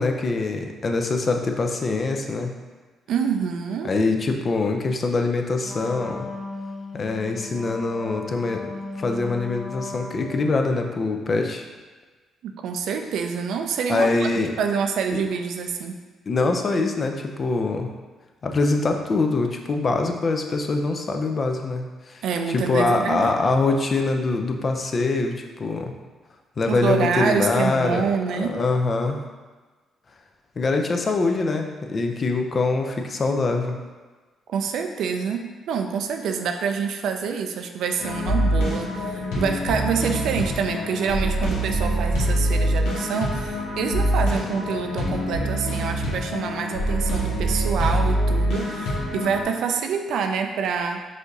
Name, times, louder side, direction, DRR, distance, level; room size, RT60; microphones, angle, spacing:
voice 1, 0.0-2.5 3.8-6.3 6.9-8.7 9.0-11.6 13.9-14.5 15.1-15.2 16.3-17.9 18.4-22.2 22.5-25.9 26.6-28.1 28.4-29.2 30.6-33.8, left 3 dB, 40° left, 4 dB, 0.5 m, -24 dB
voice 2, 3.1-3.9 12.4-14.3 14.6-16.0 22.2-23.3 26.7-28.6 34.5-51.1, right 6 dB, 75° right, 5 dB, 0.4 m, -26 dB
Wind instrument woodwind instrument, 5.6-10.7, left 3 dB, 10° right, 0.9 m, -36 dB
sound 1, 38.0-49.4, equal, 90° left, 1.1 m, -24 dB
4.9 x 2.7 x 3.9 m, 1.3 s
cardioid pair, 90°, 0 cm